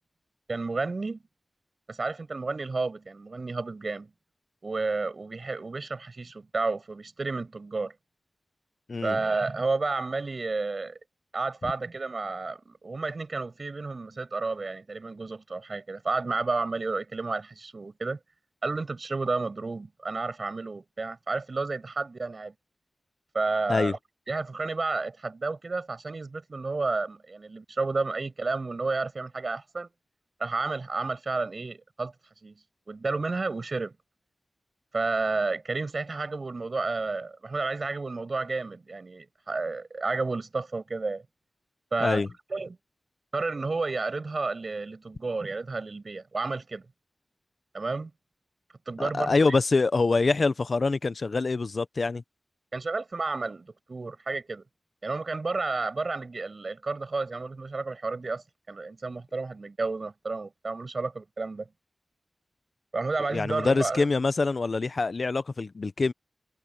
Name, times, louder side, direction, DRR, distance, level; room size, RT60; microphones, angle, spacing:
voice 1, 0.5-1.2 1.9-4.1 4.6-7.9 9.0-11.0 11.3-18.2 18.6-22.5 23.3-24.0 24.3-29.9 30.4-32.1 32.4-32.6 32.9-33.9 34.9-41.2 41.9-42.2 42.5-42.8 43.3-46.8 47.7-48.1 48.9-49.3 52.7-54.6 55.0-61.7 62.9-64.1, right 3 dB, 60° right, 7.4 m, -31 dB
voice 2, 49.0-52.2 63.3-66.1, left 3 dB, 60° left, 0.8 m, -25 dB
cardioid pair, 45°, 0 cm